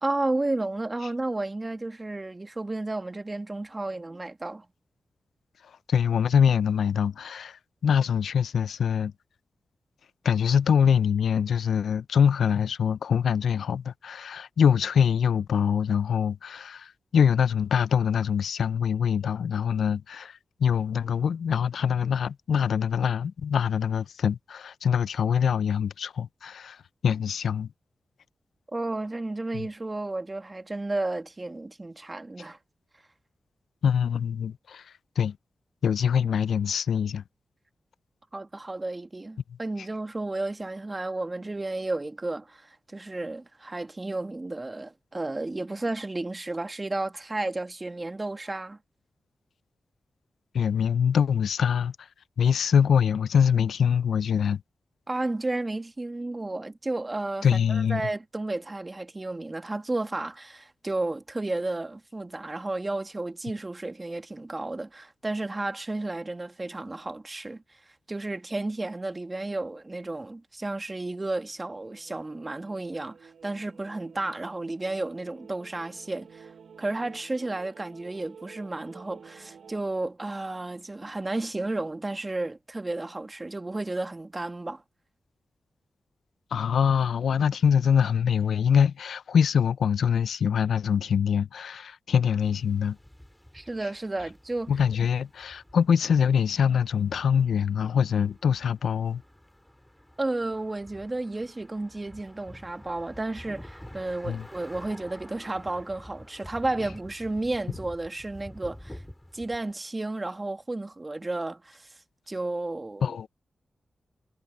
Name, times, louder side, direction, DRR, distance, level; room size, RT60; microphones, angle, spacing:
voice 1, 0.0-4.7 28.7-32.6 38.3-48.8 55.1-67.6 68.1-76.5 76.8-84.8 93.5-94.7 100.2-109.0 109.3-111.9 112.3-113.3, right 2 dB, 30° right, 2.0 m, -32 dB
voice 2, 5.6-9.1 10.2-27.7 29.5-29.6 33.8-35.4 35.8-37.2 50.5-52.1 52.4-54.6 57.4-58.0 86.5-93.0 94.7-99.2 104.2-104.4 113.0-113.3, left 7 dB, 85° left, 0.4 m, -24 dB
sound 1, 71.4-79.8, right 6 dB, 80° right, 1.8 m, -51 dB
sound 2, 92.4-109.7, left 1 dB, 10° left, 4.4 m, -48 dB
cardioid pair, 50°, 0 cm